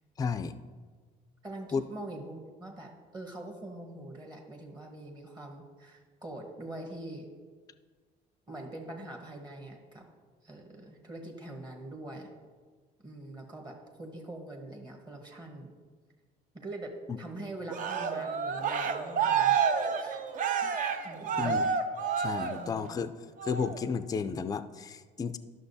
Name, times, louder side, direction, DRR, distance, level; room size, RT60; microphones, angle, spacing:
voice 1, 0.2-0.6 1.7-1.8 17.1-17.2 21.4-21.8 22.2-23.1 23.4-25.4, left 5 dB, 20° left, 10 dB, 0.3 m, -33 dB
voice 2, 1.4-7.3 8.5-10.0 10.4-12.3 13.0-15.7 16.5-19.6 20.0-20.2 20.6-20.8 21.0-21.4 22.5-22.9, right 1 dB, 25° right, 1 dB, 1.2 m, -43 dB
Cheering, 17.7-22.9 23.4-23.8, right 6 dB, 50° right, 0.6 m, -29 dB
11.5 x 6.2 x 2.7 m, 1.5 s
cardioid pair, 110°, 17 cm